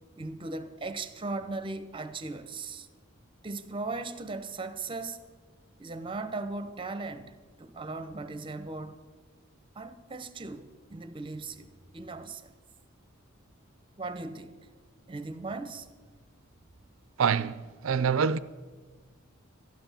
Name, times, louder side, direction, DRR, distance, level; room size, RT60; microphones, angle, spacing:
voice 1, 0.2-2.9 3.4-5.2 5.8-9.0 9.7-11.7 11.9-12.5 14.0-14.6 15.1-15.9, right 3 dB, 25° right, 0.8 m, -38 dB
voice 2, 17.2-18.4, right 6 dB, 75° right, 0.5 m, -26 dB
13.0 x 10.5 x 5.7 m
head